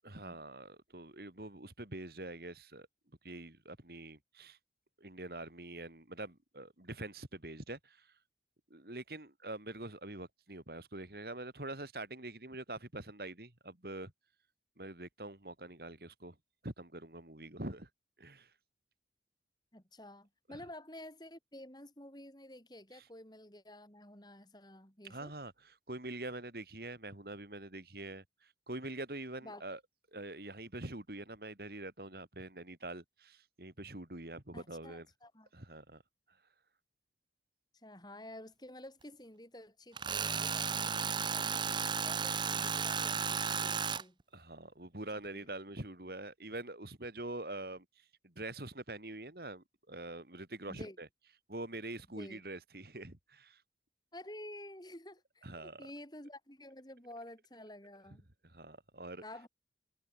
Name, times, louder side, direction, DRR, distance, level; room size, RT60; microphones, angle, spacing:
voice 1, 0.0-2.9 3.2-4.6 5.0-8.1 8.7-14.1 14.8-16.3 16.6-17.9 18.2-18.5 20.5-20.6 25.1-28.2 28.7-29.8 30.1-35.1 35.5-36.0 44.3-47.8 48.2-51.1 51.5-53.6 55.4-55.9 58.4-59.2, right 2 dB, 55° right, 2.7 m, -45 dB
voice 2, 19.7-25.3 29.4-29.6 34.5-35.5 37.7-44.2 45.3-45.4 50.7-51.0 52.1-52.4 54.1-58.3 59.2-59.5, left 1 dB, 25° left, 6.9 m, -51 dB
Tools, 40.0-44.0, right 6 dB, 25° right, 0.8 m, -34 dB
head